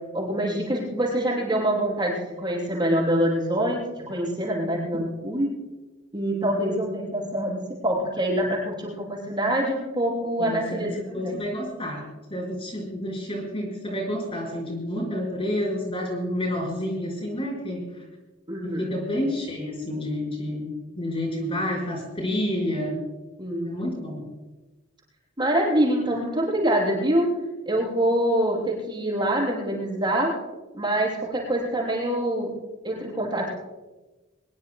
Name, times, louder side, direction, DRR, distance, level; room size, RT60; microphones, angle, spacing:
voice 1, 0.1-5.5 6.1-11.4 18.5-18.9 23.4-23.7 25.4-27.3 27.6-30.3 30.7-32.5 32.8-33.6, right 1 dB, 25° right, -5 dB, 6.5 m, -25 dB
voice 2, 10.4-12.0 12.3-17.9 18.6-20.7 20.9-23.0 23.6-24.2, left 1 dB, 30° left, -2 dB, 4.9 m, -29 dB
23.5 x 22.5 x 2.2 m, 1.2 s
head